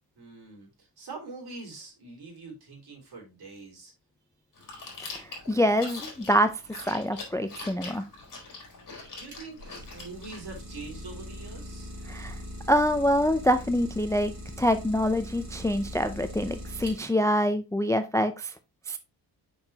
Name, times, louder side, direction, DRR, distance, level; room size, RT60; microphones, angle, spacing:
voice 1, 0.2-0.7 1.0-3.9 9.2-11.9, right 3 dB, 60° right, 3.7 m, -44 dB
Chewing mastication, 4.5-10.4, left 3 dB, 45° left, 3.7 m, -43 dB
voice 2, 5.1-6.5 6.9-8.0 12.1-12.4 12.7-14.3 14.6-18.5 18.9-19.0, equal, 10° left, 0.4 m, -25 dB
Idling, 9.0-17.4, equal, 40° right, 3.4 m, -41 dB
6.7 x 5.7 x 2.8 m
wide cardioid pair, 120°, 42 cm